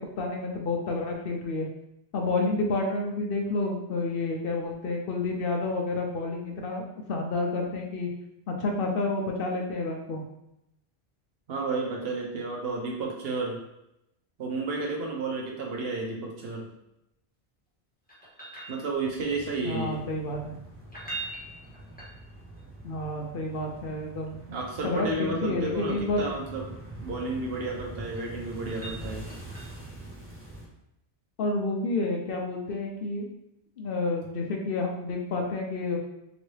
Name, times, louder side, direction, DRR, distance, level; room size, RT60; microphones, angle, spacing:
voice 1, 0.0-1.7 2.1-6.8 7.1-8.1 8.5-10.2 19.6-20.5 22.8-24.3 24.8-26.3 31.4-33.3 33.8-36.0, left 2 dB, 65° left, 1 dB, 0.7 m, -29 dB
voice 2, 11.5-13.6 14.4-16.7 18.7-20.0 24.5-26.7 27.0-29.3, right 3 dB, 65° right, 0 dB, 0.9 m, -32 dB
sound 1, 18.1-19.3 20.8-22.6 24.8-26.4 27.8-29.9 32.7-32.8, right 3 dB, 10° left, 1.0 m, -43 dB
sound 2, 19.0-30.7, right 1 dB, 20° right, 0.4 m, -44 dB
3.0 x 2.7 x 3.1 m, 0.83 s
omnidirectional pair, 1.1 m